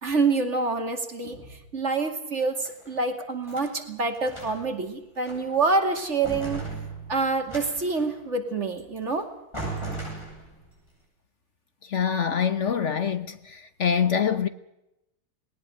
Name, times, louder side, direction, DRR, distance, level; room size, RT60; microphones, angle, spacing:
voice 1, 0.0-6.6 7.1-9.3, right 3 dB, 50° right, 2.8 m, -27 dB
sound 1, 2.4-3.7 4.1-4.8 5.2-5.7 6.0-8.2 9.1-9.2 9.5-10.7, right 3 dB, 15° left, 8.0 m, -37 dB
voice 2, 11.9-14.5, left 7 dB, 55° left, 1.2 m, -25 dB
20.0 x 19.0 x 7.8 m
omnidirectional pair, 1.6 m